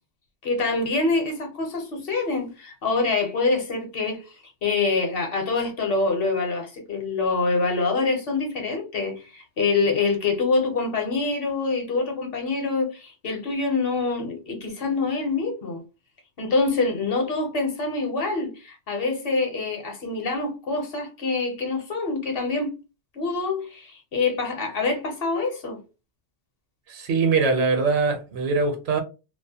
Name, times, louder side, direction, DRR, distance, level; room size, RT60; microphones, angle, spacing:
voice 1, 0.4-4.4 4.6-15.8 16.4-22.7 23.1-25.8, left 3 dB, 60° left, 0.9 m, -25 dB
voice 2, 26.9-29.0, right 4 dB, 70° right, 0.9 m, -22 dB
2.4 x 2.1 x 2.7 m
omnidirectional pair, 1.1 m